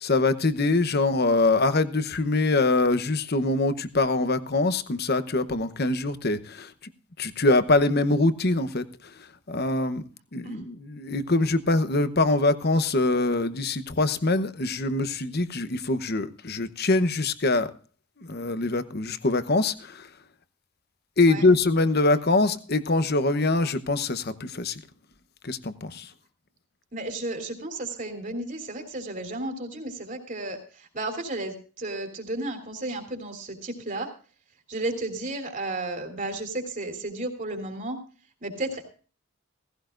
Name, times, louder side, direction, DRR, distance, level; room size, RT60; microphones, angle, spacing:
voice 1, 0.0-6.7 7.2-9.1 9.5-10.0 10.3-17.7 18.2-20.1 21.2-24.8 25.4-26.1, left 2 dB, 45° left, 12 dB, 0.9 m, -24 dB
voice 2, 26.9-34.1 34.7-38.0 38.4-38.8, right 2 dB, 35° right, 6 dB, 3.2 m, -33 dB
17.5 x 16.0 x 2.5 m, 0.38 s
head